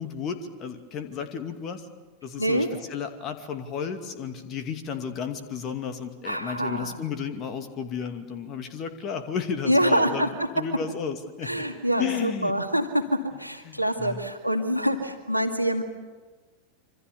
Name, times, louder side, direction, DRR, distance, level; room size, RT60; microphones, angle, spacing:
voice 1, 0.0-1.9 2.2-11.6 12.0-12.5 13.6-14.2, left 6 dB, 35° left, 7 dB, 2.4 m, -33 dB
voice 2, 6.2-7.0 9.7-10.5 11.4-15.8, equal, 90° left, 6 dB, 2.1 m, -25 dB
27.0 x 25.5 x 7.0 m, 1.3 s
figure-of-eight pair, 90°, 0 cm